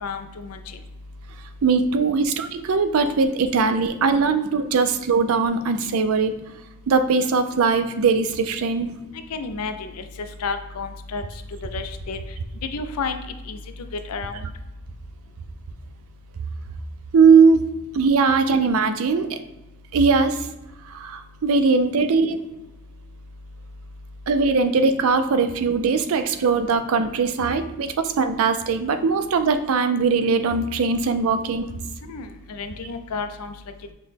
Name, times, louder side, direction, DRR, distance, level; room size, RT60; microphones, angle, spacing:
voice 1, 0.0-0.6 9.3-9.9 10.4-11.2 11.7-12.2 12.6-13.2 13.5-13.6 14.1-14.4 32.1-32.2 32.5-33.5, left 4 dB, 85° left, 8 dB, 0.4 m, -30 dB
voice 2, 1.6-6.3 6.9-8.9 17.1-19.4 19.9-20.4 20.9-22.4 24.3-31.7, right 4 dB, 75° right, 9 dB, 0.4 m, -20 dB
5.8 x 2.1 x 3.3 m, 0.95 s
head